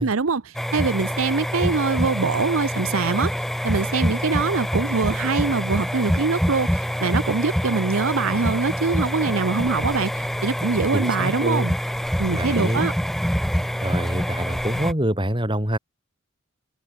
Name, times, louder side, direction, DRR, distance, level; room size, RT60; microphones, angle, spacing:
voice 1, 0.0-3.3 3.6-11.8 12.2-12.9, right 4 dB, 80° right, 0.8 m, -24 dB
sound 1, 0.5-14.9, equal, ahead, 3.0 m, -26 dB
voice 2, 10.9-11.7 12.3-12.8 13.8-15.8, right 1 dB, 25° right, 5.8 m, -25 dB
head